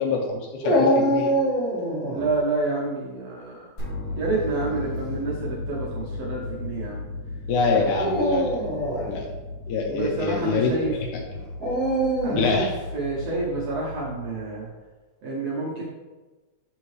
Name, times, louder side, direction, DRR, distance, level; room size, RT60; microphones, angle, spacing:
voice 1, 0.0-1.3 7.5-8.6 9.1-9.3 9.7-10.7 11.4-11.5 12.4-12.7, left 4 dB, 80° left, 1 dB, 1.9 m, -24 dB
Dog, 0.6-2.3 4.4-4.9 5.6-5.7 7.9-9.1 11.6-12.6, right 1 dB, 40° right, 0.9 m, -24 dB
voice 2, 2.1-3.7 4.2-7.0 7.6-7.8 9.9-10.9 12.2-14.7 15.2-15.8, right 3 dB, 70° right, -5 dB, 1.6 m, -29 dB
sound 1, 3.8-14.7, left 2 dB, 50° left, 1.2 m, -35 dB
6.7 x 4.5 x 3.1 m, 1.2 s
omnidirectional pair, 3.8 m